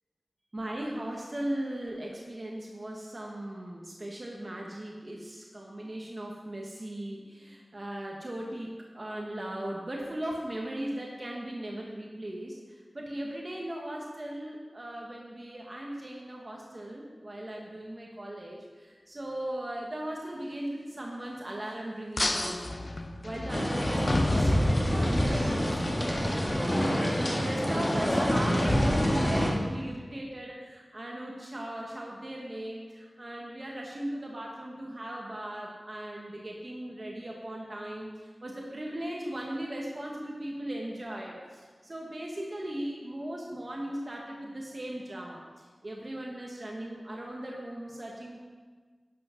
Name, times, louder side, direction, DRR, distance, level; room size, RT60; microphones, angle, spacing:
voice 1, 0.5-22.8 23.2-26.8 27.1-48.4, right 1 dB, 40° right, -2 dB, 1.4 m, -38 dB
sound 1, 22.2-25.4, left 2 dB, 45° left, 0.8 m, -31 dB
sound 2, 23.5-29.5, equal, 25° left, 1.9 m, -26 dB
11.5 x 5.9 x 5.8 m, 1.5 s
wide cardioid pair, 70°, 0 cm